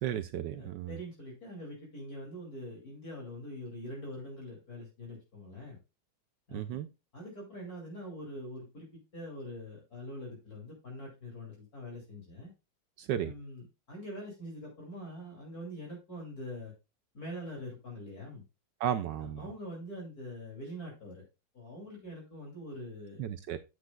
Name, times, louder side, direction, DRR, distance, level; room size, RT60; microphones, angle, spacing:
voice 1, 0.0-0.9 6.5-6.9 13.0-13.3 18.8-19.5 23.2-23.6, right 10 dB, 70° right, 1.1 m, -34 dB
voice 2, 0.5-5.8 6.5-6.8 7.1-12.5 13.2-16.7 17.1-18.4 19.2-21.2 21.5-23.2, equal, 45° left, 3.1 m, -44 dB
9.6 x 7.8 x 2.3 m
omnidirectional pair, 2.3 m